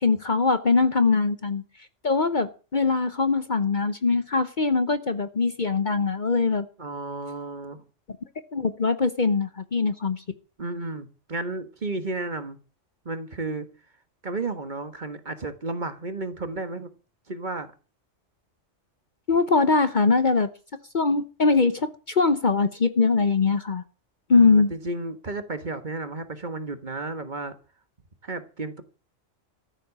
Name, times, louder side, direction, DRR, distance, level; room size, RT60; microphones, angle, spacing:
voice 1, 0.0-1.6 2.0-6.6 8.5-10.2 19.3-20.5 20.9-23.8 24.3-24.7, left 4 dB, 40° left, 1.0 m, -22 dB
voice 2, 6.8-7.8 10.6-12.6 13.0-13.7 14.2-16.9 17.3-17.7 24.3-27.5 28.2-28.8, right 2 dB, 40° right, 1.5 m, -33 dB
14.0 x 7.7 x 8.4 m
omnidirectional pair, 1.3 m